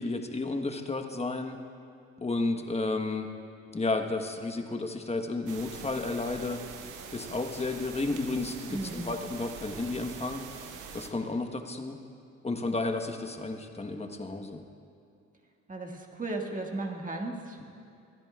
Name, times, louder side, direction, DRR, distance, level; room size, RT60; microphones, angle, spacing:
voice 1, 0.0-1.5 2.2-3.3 3.7-6.6 7.1-12.0 12.4-14.6, left 3 dB, 20° left, 5 dB, 1.2 m, -32 dB
sound 1, 5.5-11.1, right 7 dB, 80° right, 1.0 m, -44 dB
voice 2, 8.7-9.1 15.7-17.6, right 2 dB, 25° right, 1 dB, 1.9 m, -35 dB
27.0 x 10.5 x 2.4 m, 2.5 s
supercardioid pair, 70°, 30 cm